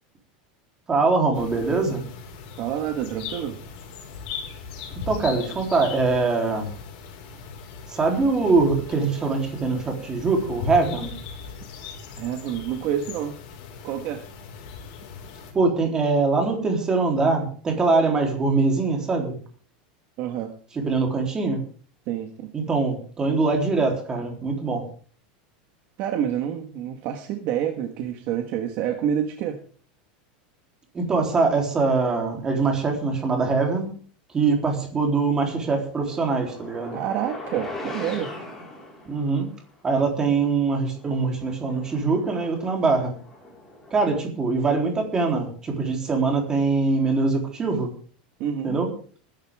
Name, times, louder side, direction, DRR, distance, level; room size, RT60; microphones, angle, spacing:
voice 1, 0.9-2.0 5.1-6.7 7.9-11.1 15.5-19.4 20.8-21.6 22.5-24.8 30.9-33.9 34.3-37.0 39.1-39.5 39.8-43.1 43.9-47.9 48.6-48.9, right 3 dB, 15° right, 2 dB, 3.5 m, -23 dB
sound 1, 1.3-15.5, left 5 dB, 50° left, 5.2 m, -39 dB
voice 2, 2.6-3.6 12.2-13.4 13.8-14.2 20.2-20.5 22.1-22.5 26.0-29.6 36.9-38.3 48.4-48.7, right 10 dB, 40° right, 5 dB, 1.6 m, -28 dB
sound 2, 35.8-39.5 40.3-40.4 40.9-44.2, left 2 dB, 10° left, 4.7 m, -40 dB
20.5 x 11.5 x 3.6 m, 0.43 s
supercardioid pair, 170°, 5 cm